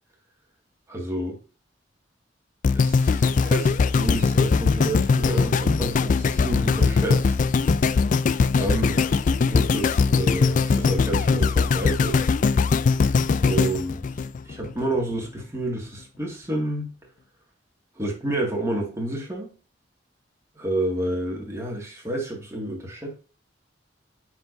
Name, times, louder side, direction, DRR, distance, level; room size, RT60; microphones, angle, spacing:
voice 1, 0.9-1.4 2.7-7.4 8.6-9.2 9.4-12.2 13.4-14.1 14.4-16.9 18.0-19.5 20.6-23.1, right 1 dB, 15° right, 2.0 m, -29 dB
sound 1, 2.6-14.8 15.4-15.5, left 4 dB, 45° left, 0.3 m, -21 dB
9.2 x 4.6 x 2.6 m
head